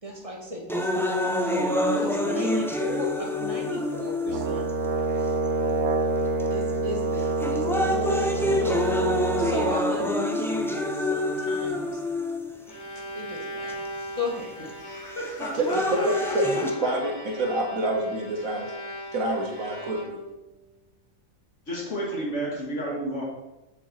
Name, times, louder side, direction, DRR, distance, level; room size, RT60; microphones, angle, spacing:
voice 1, 0.0-4.6 6.5-7.2 7.5-8.8 9.4-10.1 10.9-12.0 13.1-13.8 14.1-14.7, left 1 dB, 25° right, -1 dB, 1.6 m, -36 dB
sound 1, 0.7-4.7 5.5-5.6 6.4-6.7 7.2-12.7 13.7-13.8 15.2-16.7, left 1 dB, 5° left, 0.5 m, -27 dB
Brass instrument, 4.3-9.8, right 3 dB, 60° right, 1.0 m, -26 dB
Bowed string instrument, 12.4-20.5, equal, 35° left, 1.4 m, -39 dB
voice 2, 14.8-17.1 17.4-17.5 21.7-23.2, right 1 dB, 60° left, -4 dB, 2.5 m, -33 dB
voice 3, 15.5-18.7 19.1-20.2, right 1 dB, 80° right, 2 dB, 1.9 m, -27 dB
8.0 x 7.2 x 4.4 m, 0.98 s
omnidirectional pair, 1.4 m